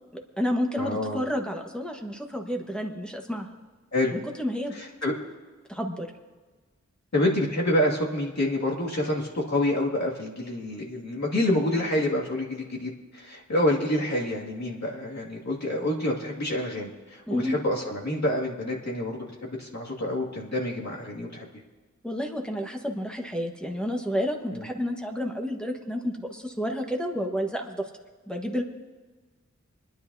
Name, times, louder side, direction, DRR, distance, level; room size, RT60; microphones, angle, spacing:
voice 1, 0.1-3.5 4.1-4.8 5.7-6.1 17.3-17.5 22.0-27.9 28.3-28.6, equal, 5° left, 1 dB, 1.4 m, -30 dB
voice 2, 0.8-1.2 3.9-4.1 4.7-5.1 7.1-21.5 24.5-24.6, left 1 dB, 65° left, -4 dB, 2.3 m, -27 dB
25.0 x 10.5 x 2.8 m, 1.3 s
wide cardioid pair, 75°, 29 cm